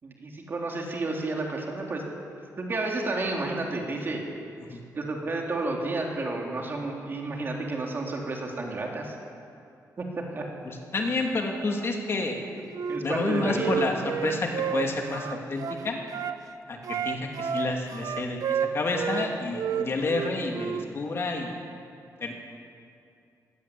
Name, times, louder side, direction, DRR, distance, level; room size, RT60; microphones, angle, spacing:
voice 1, 0.0-2.0 2.6-4.2 4.9-9.1 10.0-10.4 12.9-13.8, right 2 dB, 35° right, 0 dB, 3.7 m, -31 dB
voice 2, 10.6-12.4 13.0-16.0 16.7-21.6 22.2-22.3, left 3 dB, 40° left, 1 dB, 2.9 m, -29 dB
Wind instrument woodwind instrument, 12.7-16.4 16.8-19.3 19.5-20.9, right 7 dB, 65° right, 1.0 m, -30 dB
23.5 x 18.5 x 8.7 m, 2.4 s
wide cardioid pair, 165°, 6 cm